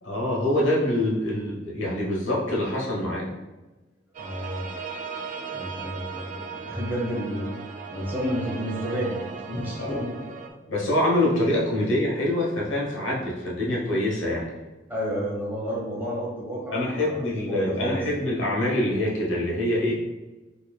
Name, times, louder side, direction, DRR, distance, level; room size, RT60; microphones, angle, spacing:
voice 1, 0.0-3.3 9.8-10.0 10.7-14.5 16.7-19.9, left 1 dB, 75° left, -3 dB, 1.1 m, -25 dB
sound 1, 4.1-10.5, right 5 dB, 40° right, 0.4 m, -37 dB
voice 2, 4.2-4.7 5.5-7.5 7.9-10.4 14.9-18.0, equal, 10° right, -5 dB, 1.1 m, -31 dB
4.8 x 3.0 x 2.3 m, 1.1 s
head